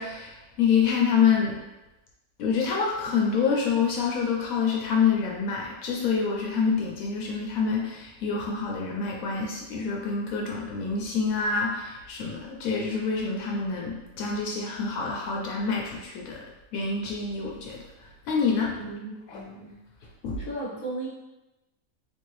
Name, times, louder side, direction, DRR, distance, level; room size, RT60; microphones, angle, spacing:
voice 1, 0.0-1.6 2.4-16.4 16.7-18.8 19.3-19.4 20.2-20.5, left 5 dB, 75° left, -1 dB, 1.0 m, -27 dB
voice 2, 18.8-19.7 20.3-21.1, right 2 dB, 40° left, -5 dB, 1.1 m, -36 dB
3.5 x 2.6 x 3.1 m, 0.99 s
omnidirectional pair, 1.5 m